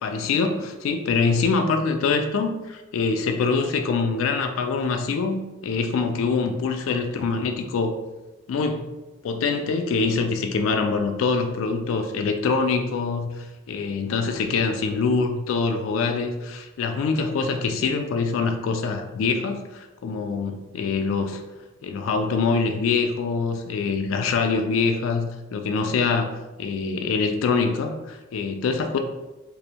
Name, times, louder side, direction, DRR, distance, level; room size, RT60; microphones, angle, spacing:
voice 1, 0.0-5.4 5.6-8.0 8.5-8.9 9.2-21.4 21.8-29.0, left 4 dB, 80° left, 7 dB, 0.3 m, -24 dB
2.5 x 2.0 x 2.8 m, 1.1 s
head